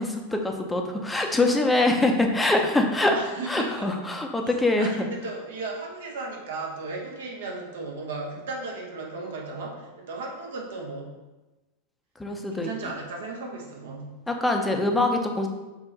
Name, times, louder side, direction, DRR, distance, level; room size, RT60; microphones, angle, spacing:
voice 1, 0.0-5.1 12.2-12.7 14.3-15.5, left 2 dB, 5° left, 2 dB, 0.7 m, -24 dB
voice 2, 3.0-3.9 4.8-11.1 12.5-14.1, right 3 dB, 60° right, 0 dB, 1.2 m, -35 dB
5.4 x 4.4 x 4.0 m, 1.1 s
figure-of-eight pair, 90°, 0 cm